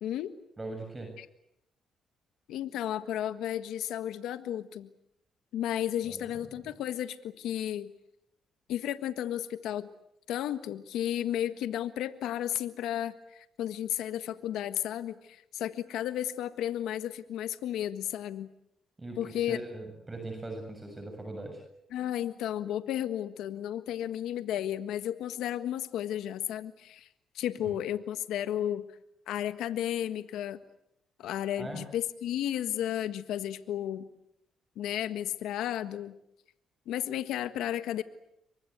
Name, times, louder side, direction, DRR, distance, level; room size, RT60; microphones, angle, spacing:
voice 1, 0.6-1.1 6.1-6.7 19.0-21.6 27.6-27.8 31.6-31.8, right 2 dB, 20° right, 4 dB, 7.2 m, -41 dB
voice 2, 2.5-4.9 5.5-7.9 8.7-9.9 10.3-18.5 19.2-19.6 21.9-27.1 27.3-28.8 29.3-30.6 31.2-34.1 34.7-36.1 36.9-38.0, left 11 dB, 85° left, 10 dB, 1.5 m, -33 dB
28.0 x 24.0 x 8.2 m, 0.79 s
cardioid pair, 90°, 0 cm